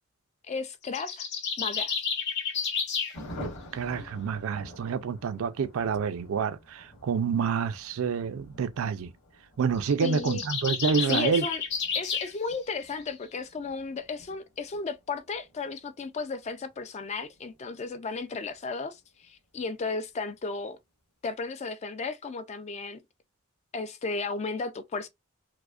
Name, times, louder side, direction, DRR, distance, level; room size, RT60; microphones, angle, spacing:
voice 1, 0.5-1.3 1.6-1.9 10.0-10.4 11.1-11.6 11.9-20.8 21.2-23.0 23.7-25.1, left 4 dB, 30° left, 0.3 m, -34 dB
sound 1, 0.8-3.2 9.8-12.3, left 6 dB, 50° left, 0.9 m, -31 dB
Thunder, 3.1-19.3 19.5-19.6 19.9-20.1 20.3-20.7, equal, 85° left, 1.9 m, -49 dB
voice 2, 3.7-9.1 9.6-11.5, right 6 dB, 70° right, 0.4 m, -28 dB
4.7 x 2.1 x 2.3 m
head